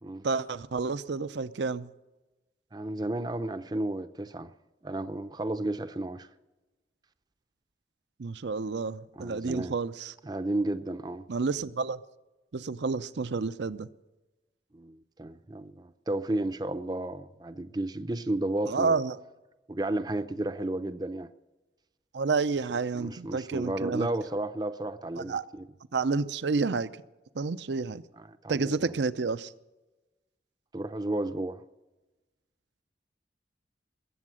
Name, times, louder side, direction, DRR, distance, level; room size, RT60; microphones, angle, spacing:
voice 1, 0.2-1.9 8.2-10.1 11.3-12.0 12.5-13.9 18.7-19.2 22.1-24.1 25.2-25.4 25.9-26.9 27.4-28.0 28.5-29.5, right 4 dB, 80° right, 0.6 m, -30 dB
voice 2, 2.7-4.5 4.8-6.3 9.2-9.7 10.2-11.3 14.7-19.0 19.7-21.3 23.0-25.7 28.2-28.8 30.7-31.6, right 1 dB, 20° right, 0.5 m, -33 dB
21.0 x 8.5 x 6.3 m
head